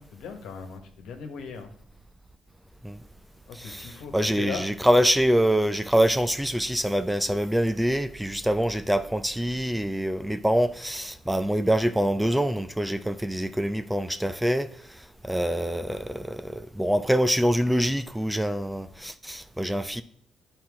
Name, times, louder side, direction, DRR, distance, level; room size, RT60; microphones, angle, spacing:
voice 1, 0.1-1.7 3.5-4.7, left 5 dB, 85° left, 1.3 m, -38 dB
voice 2, 3.5-20.0, equal, 5° right, 0.5 m, -25 dB
9.5 x 4.5 x 3.6 m
cardioid pair, 90°, 0 cm